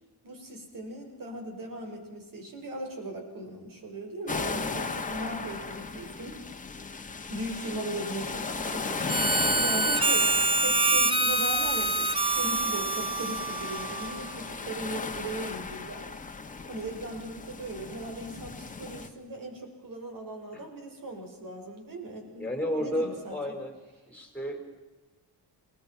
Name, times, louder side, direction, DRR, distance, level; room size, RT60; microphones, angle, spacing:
voice 1, 0.2-6.4 7.3-10.3 10.6-16.1 16.7-22.5 22.8-23.3, right 1 dB, 55° right, 4 dB, 5.9 m, -38 dB
sound 1, 4.3-19.1, left 4 dB, 20° left, 1.5 m, -36 dB
Harmonica, 9.1-14.3, right 3 dB, 15° right, 0.9 m, -26 dB
voice 2, 22.4-23.8 24.0-24.8, equal, 5° left, 4 dB, 4.7 m, -33 dB
29.5 x 20.0 x 5.9 m, 1.2 s
wide cardioid pair, 160°, 39 cm